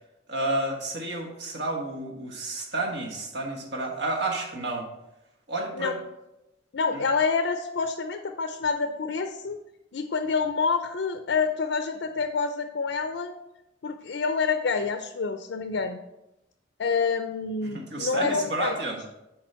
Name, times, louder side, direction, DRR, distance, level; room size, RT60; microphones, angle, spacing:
voice 1, 0.3-4.9 5.5-6.0 6.9-7.0 17.6-19.0, right 2 dB, 60° right, 0 dB, 1.4 m, -30 dB
voice 2, 6.7-9.6 9.9-13.3 13.8-16.0 16.8-18.7, left 5 dB, 70° left, 7 dB, 0.5 m, -27 dB
7.3 x 4.8 x 4.3 m, 0.91 s
head